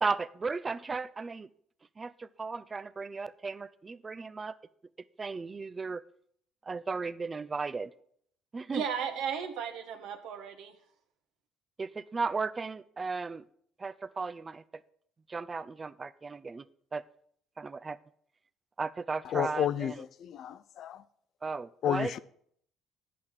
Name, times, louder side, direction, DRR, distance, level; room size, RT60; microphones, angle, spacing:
voice 1, 0.0-1.5 2.0-4.6 5.2-6.0 6.7-7.9 8.5-8.8 11.8-13.4 13.8-14.6 15.3-16.6 16.9-17.0 17.6-18.0 18.8-20.0 21.4-22.2, right 4 dB, 30° right, 0.4 m, -35 dB
voice 2, 8.7-10.7, right 7 dB, 65° right, 1.1 m, -35 dB
voice 3, 19.3-21.0 21.8-22.2, left 10 dB, 55° left, 0.4 m, -31 dB
8.5 x 5.6 x 6.6 m
hypercardioid pair, 55°, 0 cm